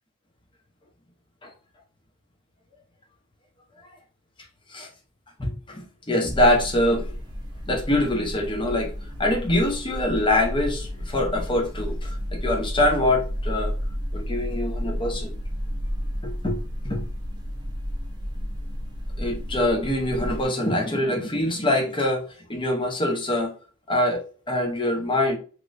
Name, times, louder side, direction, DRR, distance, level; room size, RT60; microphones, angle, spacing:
voice 1, 5.4-7.1 7.7-8.9 9.2-13.7 14.1-15.3 16.2-16.6 16.8-17.0 19.2-22.2 22.5-23.5 23.9-25.4, left 1 dB, 25° left, 0.8 m, -24 dB
sound 1, 6.3-20.5, equal, 20° right, 0.6 m, -32 dB
3.1 x 2.9 x 2.6 m
head